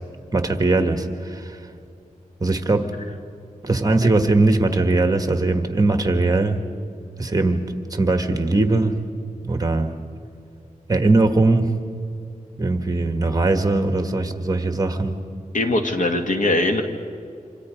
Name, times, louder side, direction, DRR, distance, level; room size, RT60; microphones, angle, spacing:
voice 1, 0.3-1.6 2.4-2.9 3.6-6.6 7.2-7.6 7.9-9.0 9.4-10.0 10.9-11.7 12.6-15.2, right 2 dB, 25° right, 7 dB, 1.6 m, -20 dB
voice 2, 15.5-16.8, left 2 dB, 70° left, 5 dB, 1.9 m, -21 dB
27.5 x 26.5 x 5.2 m, 2.5 s
wide cardioid pair, 120°, 14 cm